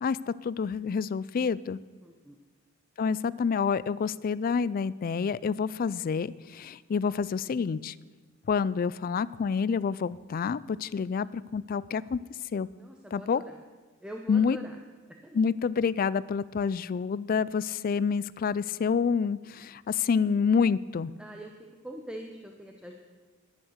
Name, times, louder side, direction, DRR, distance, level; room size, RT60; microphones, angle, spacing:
voice 1, 0.0-1.8 3.0-7.9 8.5-12.2 12.5-12.7 13.1-13.4 14.3-14.6 15.3-21.1, left 6 dB, 45° left, 19 dB, 0.3 m, -28 dB
voice 2, 2.0-2.4 12.8-13.5 14.0-14.8 15.2-15.4 21.2-21.5 21.8-22.9, equal, 5° right, 1 dB, 0.8 m, -43 dB
11.0 x 10.5 x 6.5 m, 1.4 s
head